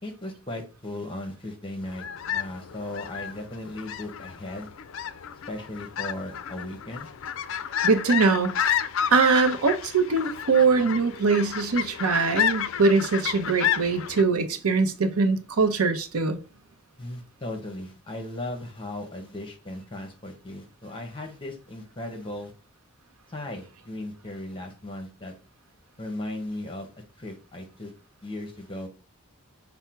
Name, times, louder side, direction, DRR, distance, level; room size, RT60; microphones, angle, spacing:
voice 1, 0.0-4.7 5.5-7.1 17.0-22.5 23.3-25.3 26.0-26.9 27.2-27.9 28.2-28.9, left 1 dB, 25° left, 1.0 m, -37 dB
sound 1, 1.8-14.2, left 9 dB, 65° left, 0.4 m, -31 dB
voice 2, 7.8-8.5 9.1-16.4, right 4 dB, 90° right, 0.7 m, -22 dB
5.7 x 2.1 x 4.4 m
head